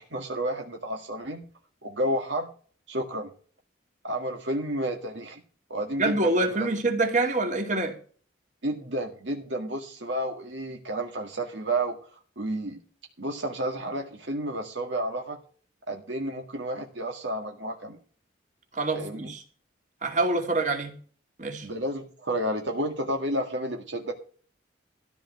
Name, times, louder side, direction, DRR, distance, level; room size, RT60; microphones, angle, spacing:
voice 1, 0.0-1.4 1.8-2.5 2.9-3.3 4.0-5.4 5.7-6.7 8.6-12.0 12.4-12.8 13.2-15.4 15.9-18.0 18.9-19.3 21.6-24.1, right 1 dB, 65° right, 1.8 m, -31 dB
voice 2, 6.0-7.9 18.7-19.4 20.0-20.9 21.4-21.7, right 2 dB, 40° right, 2.7 m, -26 dB
14.0 x 4.9 x 7.9 m
head